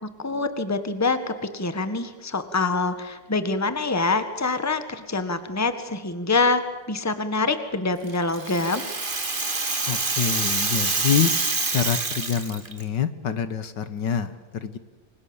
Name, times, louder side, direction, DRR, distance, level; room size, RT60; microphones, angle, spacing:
voice 1, 0.0-8.9, left 3 dB, 10° left, 10 dB, 1.5 m, -25 dB
Rattle (instrument), 8.1-12.8, right 3 dB, 30° right, 2.2 m, -26 dB
voice 2, 9.9-11.3 11.7-14.8, left 8 dB, 70° left, 12 dB, 1.9 m, -26 dB
30.0 x 23.5 x 7.2 m, 1.2 s
omnidirectional pair, 2.0 m